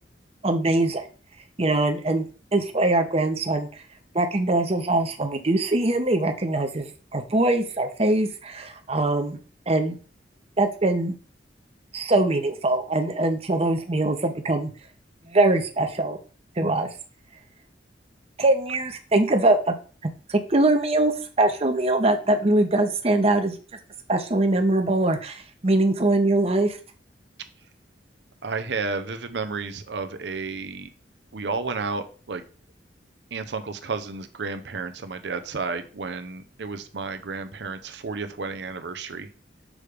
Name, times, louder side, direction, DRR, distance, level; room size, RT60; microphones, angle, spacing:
voice 1, 0.4-1.1 1.6-3.7 4.1-9.4 9.7-10.0 10.6-11.2 11.9-14.7 15.3-16.2 16.6-16.9 18.4-19.7 20.0-23.6 24.1-26.8, right 2 dB, 35° right, 5 dB, 0.9 m, -22 dB
voice 2, 28.4-30.9 31.3-32.4 33.3-39.3, right 4 dB, 70° right, 9 dB, 0.7 m, -32 dB
6.3 x 3.3 x 5.0 m, 0.38 s
head